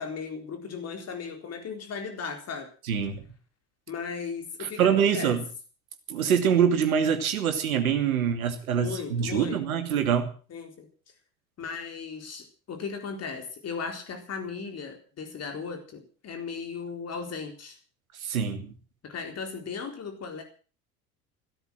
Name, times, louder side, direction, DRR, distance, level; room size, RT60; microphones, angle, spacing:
voice 1, 0.0-2.7 3.9-5.4 8.8-9.6 10.5-10.9 11.6-17.8 19.0-20.4, left 5 dB, 35° left, 5 dB, 4.2 m, -36 dB
voice 2, 2.9-3.2 4.6-5.4 6.1-10.3 18.2-18.7, right 8 dB, 70° right, 7 dB, 2.9 m, -25 dB
16.0 x 13.5 x 6.3 m, 0.39 s
figure-of-eight pair, 70°, 44 cm